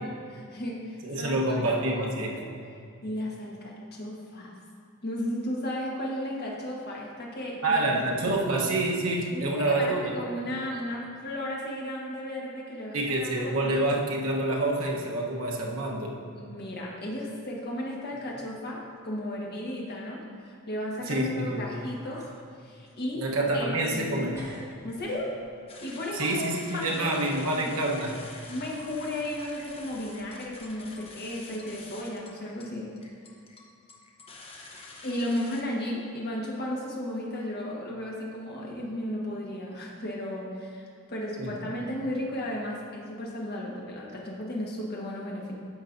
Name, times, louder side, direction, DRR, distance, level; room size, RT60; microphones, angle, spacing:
voice 1, 0.0-2.4 3.0-4.5 5.0-8.0 9.3-14.0 16.4-22.3 22.6-23.2 23.5-24.2 24.8-25.3 25.8-27.2 27.4-27.7 28.5-32.9 35.0-45.5, left 1 dB, 50° left, -3 dB, 1.4 m, -34 dB
voice 2, 1.0-2.4 7.6-10.1 12.9-16.2 21.1-21.6 23.2-24.3 26.1-28.3 41.4-41.5, right 2 dB, 70° right, -1 dB, 1.1 m, -27 dB
sound 1, 15.3-15.4 15.8-15.9 16.7-16.9 17.6-17.7 18.1-18.5 18.8-18.9 21.4-21.5 21.9-22.4 22.8-24.1 24.3-25.6, equal, 15° right, 1.7 m, -50 dB
sound 2, 25.7-35.6, left 3 dB, 25° left, 0.8 m, -47 dB
10.5 x 6.9 x 2.6 m, 2.4 s
head